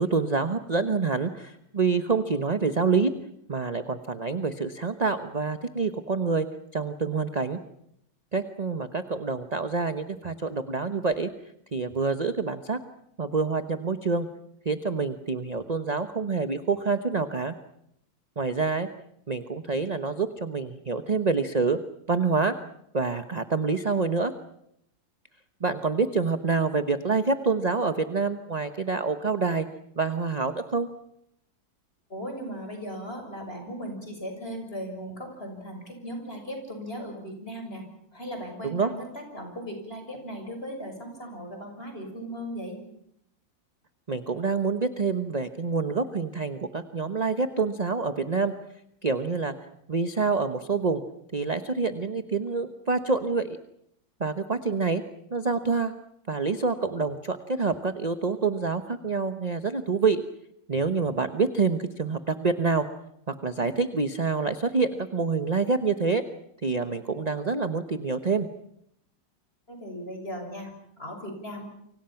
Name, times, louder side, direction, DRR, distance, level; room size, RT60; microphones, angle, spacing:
voice 1, 0.0-3.1 3.5-6.5 6.7-7.6 8.3-11.3 11.7-12.8 13.2-14.3 14.6-17.5 18.4-18.9 19.3-21.8 22.1-22.6 22.9-24.3 25.6-29.7 29.9-30.9 38.6-38.9 44.1-48.5 49.0-49.5 49.9-51.0 51.3-53.6 54.2-55.0 55.3-55.9 56.3-60.2 60.7-62.9 63.3-66.2 66.6-68.5, right 4 dB, 30° right, 9 dB, 0.9 m, -27 dB
voice 2, 32.1-42.8 69.7-71.7, equal, 30° left, 4 dB, 6.8 m, -37 dB
29.0 x 25.5 x 5.9 m, 0.75 s
omnidirectional pair, 2.0 m